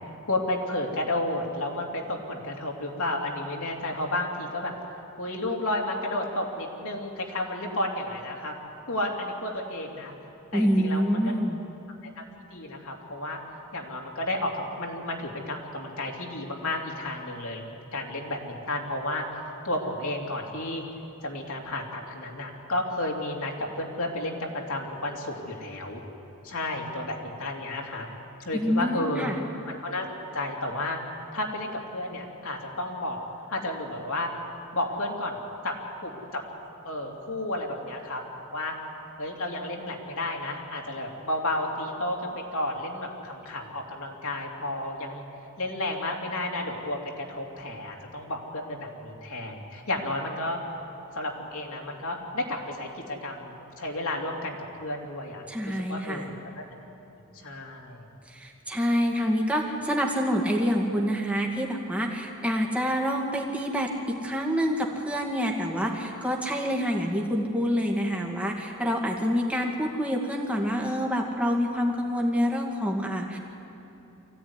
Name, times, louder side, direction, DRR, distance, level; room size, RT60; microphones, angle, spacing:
voice 1, 0.0-8.5 8.9-10.1 10.5-11.3 12.0-12.1 12.5-13.4 13.7-20.8 21.2-26.0 26.4-28.1 28.4-29.3 29.7-31.0 31.3-33.2 33.5-34.3 34.7-35.4 35.6-36.4 36.8-38.2 38.5-38.8 39.2-45.2 45.6-50.6 51.1-56.6 57.3-58.1, left 1 dB, 70° left, -1 dB, 3.1 m, -32 dB
voice 2, 10.5-11.6 28.5-29.4 55.5-56.3 58.3-73.4, equal, 5° right, 0 dB, 2.2 m, -27 dB
24.5 x 16.0 x 9.8 m, 2.9 s
head